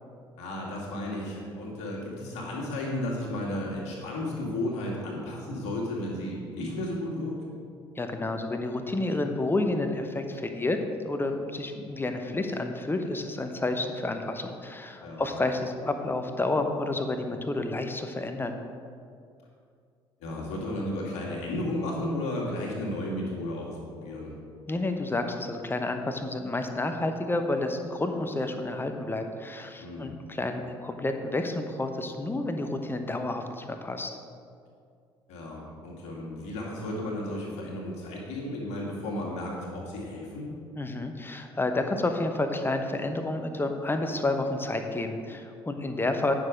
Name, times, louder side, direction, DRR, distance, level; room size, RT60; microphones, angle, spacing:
voice 1, 0.4-7.4 15.0-15.3 20.2-24.3 29.8-30.1 35.3-40.5, left 1 dB, 60° left, -3 dB, 2.2 m, -33 dB
voice 2, 8.0-10.8 11.0-18.6 24.7-34.2 40.8-46.3, left 2 dB, 15° left, 6 dB, 0.9 m, -30 dB
9.6 x 6.3 x 5.1 m, 2.3 s
figure-of-eight pair, 50°, 14 cm